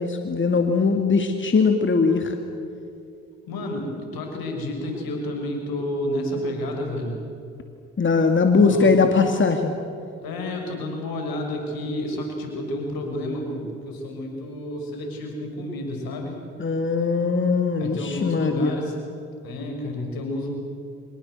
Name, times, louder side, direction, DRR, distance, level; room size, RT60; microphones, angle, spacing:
voice 1, 0.0-2.3 8.0-9.7 16.6-18.8, left 4 dB, 30° left, 5 dB, 2.2 m, -20 dB
voice 2, 3.5-7.1 8.5-9.0 10.2-16.4 17.8-19.0 19.4-20.5, left 1 dB, 70° left, 2 dB, 6.3 m, -30 dB
25.0 x 20.5 x 8.0 m, 2.6 s
hypercardioid pair, 50°, 37 cm